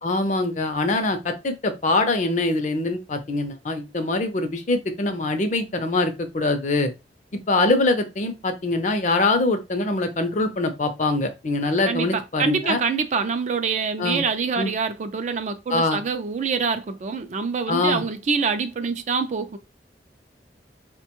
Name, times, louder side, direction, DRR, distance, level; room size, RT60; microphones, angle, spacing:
voice 1, 0.0-6.9 7.3-12.8 14.0-14.2 14.6-14.7 15.7-16.0 17.7-18.0, left 2 dB, 45° left, 0.5 m, -23 dB
voice 2, 11.9-19.6, right 5 dB, 40° right, 0.4 m, -25 dB
4.3 x 2.2 x 2.9 m
head